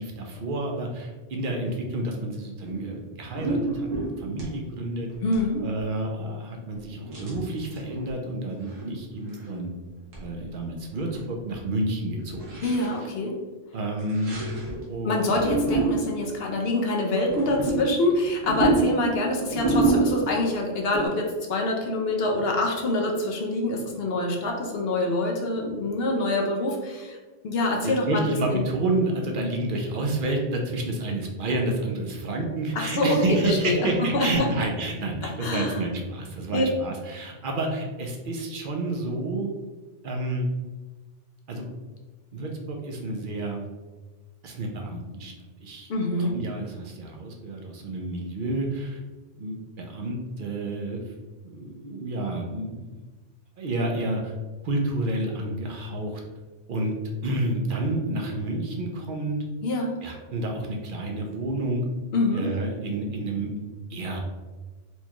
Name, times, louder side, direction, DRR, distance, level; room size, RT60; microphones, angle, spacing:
voice 1, 0.0-5.1 5.6-9.7 10.2-12.6 13.7-14.5 14.9-15.4 27.8-39.5 40.0-40.5 41.5-41.7 42.3-43.6 44.4-45.3 45.6-45.9 46.2-49.0 49.4-51.1 51.4-53.0 53.6-54.3 54.6-56.2 56.7-56.9 57.2-59.4 60.0-61.8 62.3-63.6 63.9-64.2, right 2 dB, 55° right, 1 dB, 0.6 m, -29 dB
sound 1, 2.6-2.9 3.2-4.5 5.1-5.5 5.8-5.9 7.0-8.1 8.6-8.9 9.2-9.6 10.1-10.2 10.6-10.7 10.8-11.3 11.5-11.6 12.4-13.0 14.0-14.8 15.2-16.3 17.2-20.5 20.9-21.1, right 3 dB, 90° right, 1.3 m, -28 dB
voice 2, 5.2-5.7 12.6-13.4 15.0-27.2 27.4-28.3 28.5-28.7 32.7-34.5 35.4-35.8 36.5-36.6 45.9-46.4 59.6-59.9 62.1-62.5, left 2 dB, 60° left, 0 dB, 0.8 m, -25 dB
4.4 x 2.2 x 2.9 m, 1.2 s
omnidirectional pair, 1.3 m